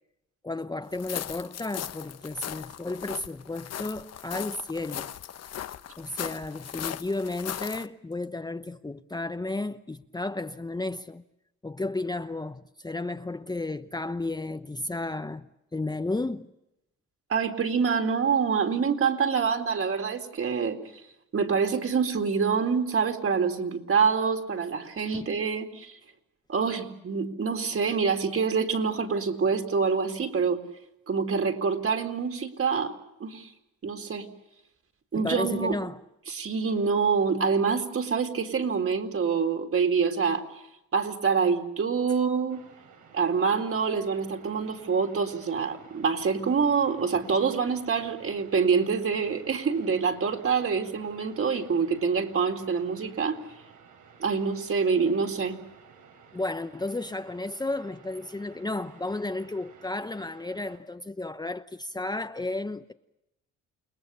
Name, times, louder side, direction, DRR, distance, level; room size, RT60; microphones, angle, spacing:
voice 1, 0.4-5.1 6.0-11.2 11.6-16.5 25.1-25.2 35.1-36.0 56.3-62.9, left 2 dB, 15° left, 1.0 m, -33 dB
sound 1, 0.9-7.9, left 10 dB, 55° left, 1.0 m, -38 dB
voice 2, 17.3-26.0 26.5-30.6 31.1-32.9 33.2-33.5 33.8-34.3 35.1-35.8 36.3-40.7 40.9-42.6 43.1-53.4 54.2-55.6, right 5 dB, 45° right, 4.1 m, -26 dB
sound 2, 42.5-60.8, right 6 dB, 80° right, 6.6 m, -54 dB
29.5 x 20.5 x 7.0 m
cardioid pair, 90°, 30 cm